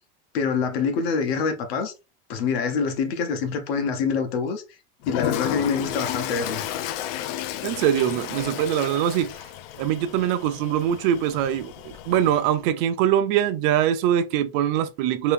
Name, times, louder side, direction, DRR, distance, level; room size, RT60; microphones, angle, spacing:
voice 1, 0.3-1.9 2.3-4.6 5.1-6.7, left 5 dB, 90° left, 0.9 m, -25 dB
Toilet flush, 5.0-12.5, left 12 dB, 75° left, 0.5 m, -33 dB
voice 2, 7.6-9.4 9.8-15.3, right 10 dB, 60° right, 0.6 m, -23 dB
2.9 x 2.8 x 3.4 m
supercardioid pair, 155°, 30 cm